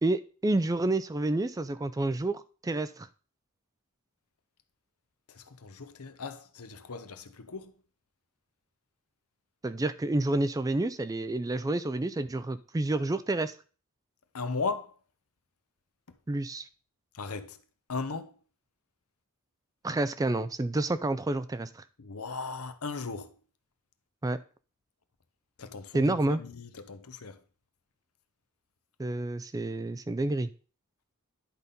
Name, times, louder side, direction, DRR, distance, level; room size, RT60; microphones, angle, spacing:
voice 1, 0.0-3.1 9.6-13.5 16.3-16.7 19.8-21.8 24.2-24.4 25.9-26.4 29.0-30.5, right 2 dB, 15° right, 0.4 m, -29 dB
voice 2, 5.3-7.7 14.3-14.9 17.1-17.6 17.9-18.3 22.0-23.3 25.6-27.4, left 4 dB, 75° left, 0.9 m, -37 dB
10.5 x 4.2 x 5.2 m
head